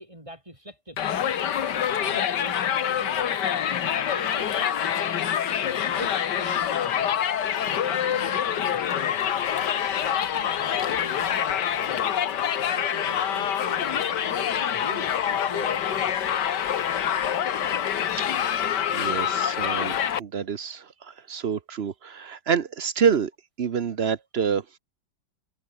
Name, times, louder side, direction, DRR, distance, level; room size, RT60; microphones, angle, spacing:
voice 1, 0.0-1.4 1.9-5.2 5.8-7.1 7.8-9.2 9.5-12.0 12.6-16.5 17.7-18.3, equal, 15° right, 7.5 m, -44 dB
Crowd, 1.0-20.2, left 9 dB, 65° left, 1.8 m, -26 dB
voice 2, 18.9-23.3 23.6-24.6, right 7 dB, 50° right, 0.8 m, -27 dB
omnidirectional pair, 2.0 m